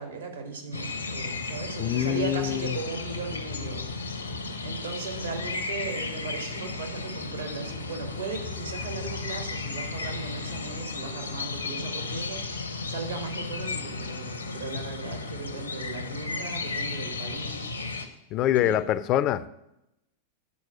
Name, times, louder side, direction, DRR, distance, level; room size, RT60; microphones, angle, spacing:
voice 1, 0.0-4.3 4.6-18.0 18.5-18.8, right 4 dB, 75° right, 1.6 m, -37 dB
sound 1, 0.7-18.1, left 3 dB, 80° left, 0.8 m, -34 dB
voice 2, 1.8-2.8 18.3-19.5, left 12 dB, 35° left, 0.4 m, -25 dB
8.3 x 4.4 x 7.1 m
figure-of-eight pair, 90°, 0 cm